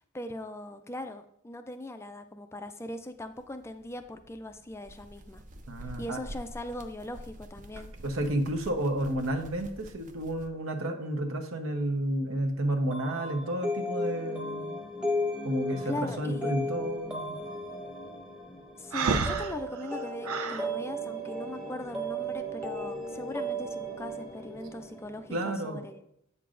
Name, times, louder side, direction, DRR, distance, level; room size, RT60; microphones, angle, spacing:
voice 1, 0.1-5.4 6.0-7.9 15.9-16.8 18.8-26.0, left 1 dB, 10° left, 8 dB, 0.3 m, -40 dB
sound 1, 3.2-10.5, right 1 dB, 35° right, 0.5 m, -47 dB
voice 2, 5.7-6.2 8.0-14.8 15.4-17.4 25.3-25.8, right 1 dB, 70° right, 4 dB, 0.9 m, -31 dB
sound 2, 12.9-25.5, equal, 5° right, 0.9 m, -35 dB
Breathing, 18.9-20.7, right 4 dB, 90° right, 0.6 m, -30 dB
8.4 x 6.7 x 2.5 m, 0.76 s
head